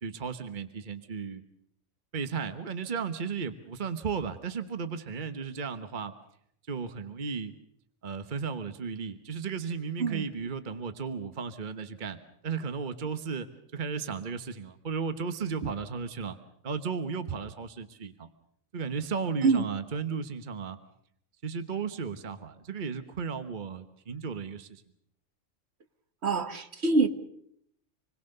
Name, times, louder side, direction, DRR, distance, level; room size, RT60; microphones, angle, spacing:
voice 1, 0.0-1.4 2.1-6.1 6.7-7.5 8.0-13.5 13.7-16.4 16.6-18.3 18.7-20.8 21.4-24.8, right 5 dB, 40° right, 10 dB, 1.3 m, -34 dB
voice 2, 26.2-27.1, right 4 dB, 55° right, 9 dB, 1.7 m, -25 dB
27.0 x 21.5 x 6.7 m, 0.71 s
omnidirectional pair, 1.3 m